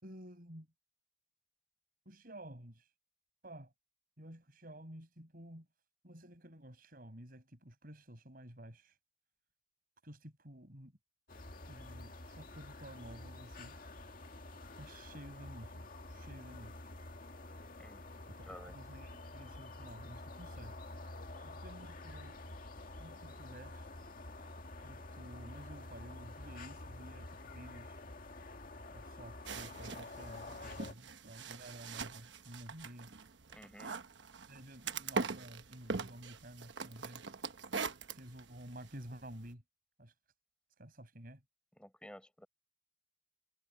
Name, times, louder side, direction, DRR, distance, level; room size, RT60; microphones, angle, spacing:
voice 1, 0.0-0.7 2.0-2.9 3.4-3.7 4.2-5.7 6.0-9.0 10.0-10.9 11.7-13.7 14.8-16.9 18.5-20.7 21.4-22.4 23.0-23.9 24.8-28.0 28.9-33.1 34.5-37.2 38.1-39.6 40.0-40.1 40.8-41.4, right 1 dB, 50° right, 6.4 m, -52 dB
sound 1, 11.3-30.9, left 2 dB, 50° left, 2.0 m, -49 dB
voice 2, 18.4-18.7 33.5-33.9 41.8-42.5, equal, 5° left, 6.2 m, -53 dB
sound 2, 29.4-39.5, right 4 dB, 85° right, 1.1 m, -43 dB
head